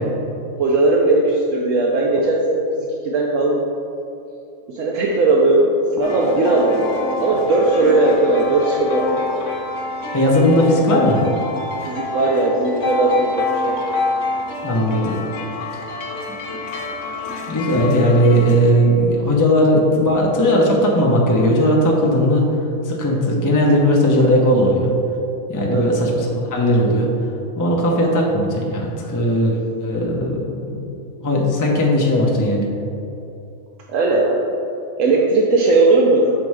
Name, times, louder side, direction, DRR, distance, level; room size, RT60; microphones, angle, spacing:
voice 1, 0.6-2.6 3.0-3.7 4.7-5.7 5.9-9.2 11.8-13.8 25.7-25.9 33.9-34.4 35.0-36.3, right 2 dB, 70° right, -1 dB, 0.9 m, -17 dB
sound 1, 6.0-18.7, left 3 dB, 65° left, 1.1 m, -27 dB
voice 2, 10.1-11.2 14.6-15.2 17.5-22.4 22.8-24.9 25.5-27.1 27.6-30.8 31.2-32.7, equal, 20° left, -2 dB, 0.6 m, -17 dB
6.0 x 4.2 x 4.7 m, 2.7 s
omnidirectional pair, 1.5 m